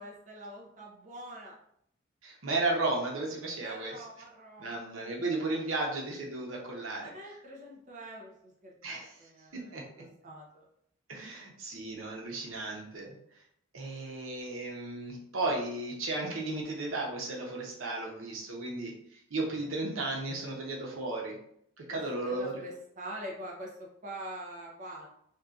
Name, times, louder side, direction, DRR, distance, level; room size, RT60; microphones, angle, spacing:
voice 1, 0.0-1.5 3.6-5.6 7.0-9.7 10.0-10.7 21.9-25.1, right 1 dB, 40° right, -2 dB, 0.6 m, -45 dB
voice 2, 2.2-4.0 4.6-7.1 8.8-9.3 9.7-9.8 11.1-13.1 13.7-21.4 21.9-22.5, right 2 dB, 90° right, -1 dB, 0.8 m, -34 dB
2.7 x 2.3 x 3.6 m, 0.71 s
head